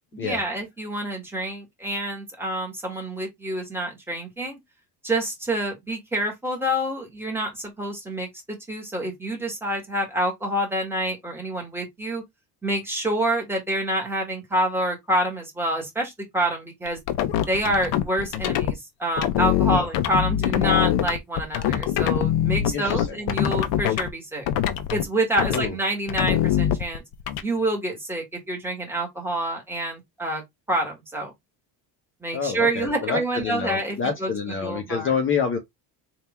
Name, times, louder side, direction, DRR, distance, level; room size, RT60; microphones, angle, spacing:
voice 1, 0.1-4.6 5.0-12.2 12.6-17.0 17.5-24.4 24.9-27.0 27.4-30.4 30.7-31.3 32.2-34.3 34.6-35.1, right 1 dB, 5° right, 2.0 m, -27 dB
sound 1, 16.9-18.7 19.2-24.1 24.5-25.0 25.4-25.7 26.1-27.4, left 11 dB, 70° left, 0.9 m, -23 dB
voice 2, 22.7-23.2 25.5-25.7 32.3-35.6, left 6 dB, 30° left, 1.0 m, -27 dB
3.7 x 2.8 x 4.4 m
cardioid pair, 140°, 39 cm